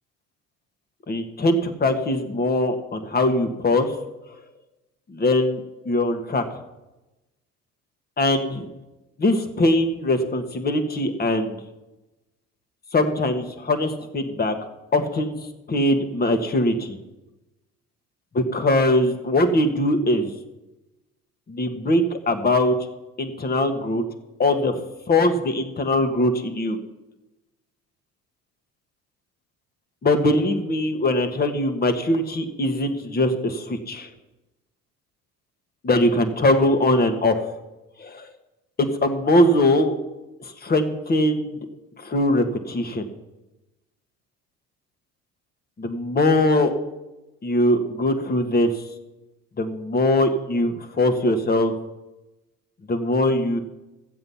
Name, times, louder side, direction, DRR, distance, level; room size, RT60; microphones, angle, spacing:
voice 1, 1.1-3.9 5.1-6.4 8.2-8.6 9.2-11.6 12.9-14.5 14.9-15.4 15.7-17.0 18.3-20.3 21.5-22.7 23.2-24.0 24.4-26.8 30.0-34.1 35.8-37.4 38.0-38.3 38.8-40.0 40.4-41.6 42.0-43.0 45.8-46.7 47.4-48.8 49.6-51.7 52.9-53.6, left 1 dB, 30° left, 7 dB, 1.6 m, -21 dB
14.5 x 7.8 x 5.7 m, 1.0 s
supercardioid pair, 85°, 29 cm